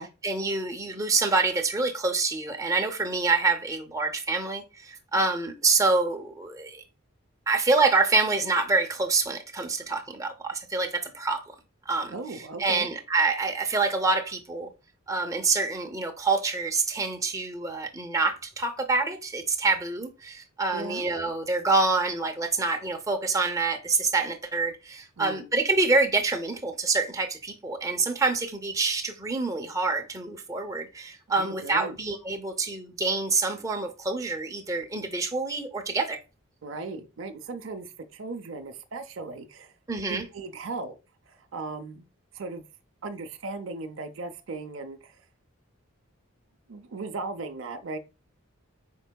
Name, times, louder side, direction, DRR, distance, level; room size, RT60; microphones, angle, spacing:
voice 1, 0.2-6.8 7.5-11.6 11.9-14.7 15.1-36.2 39.9-40.2, right 3 dB, 15° right, 0.6 m, -26 dB
voice 2, 12.1-12.9 20.7-21.0 25.2-25.5 31.3-32.0 36.6-39.7 40.1-40.9 41.3-42.1 42.3-42.6 43.0-45.1 46.7-48.0, right 3 dB, 65° right, 0.6 m, -37 dB
5.3 x 4.4 x 2.2 m
head